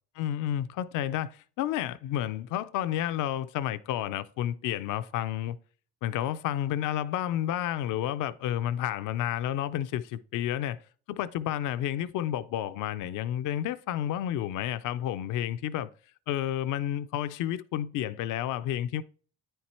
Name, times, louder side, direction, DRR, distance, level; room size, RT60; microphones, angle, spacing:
voice 1, 0.2-5.6 6.0-10.8 11.1-15.9 16.3-19.0, left 11 dB, 90° left, 0.5 m, -31 dB
9.4 x 4.5 x 4.2 m
cardioid pair, 90°, 30 cm